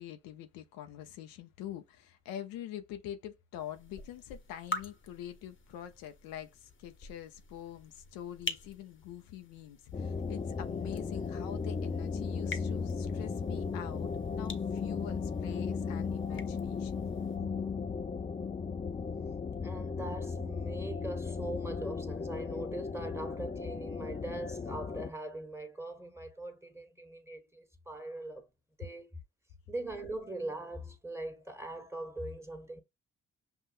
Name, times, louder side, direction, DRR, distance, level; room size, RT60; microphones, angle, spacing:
voice 1, 0.0-17.0, left 11 dB, 80° left, 0.7 m, -45 dB
sound 1, 3.6-17.4, left 3 dB, 35° left, 1.0 m, -47 dB
sound 2, 9.9-25.1, left 5 dB, 20° left, 0.4 m, -36 dB
voice 2, 19.6-28.5 28.8-29.1 29.7-32.8, right 2 dB, 10° right, 1.4 m, -41 dB
5.8 x 2.6 x 2.5 m
hypercardioid pair, 50°, 34 cm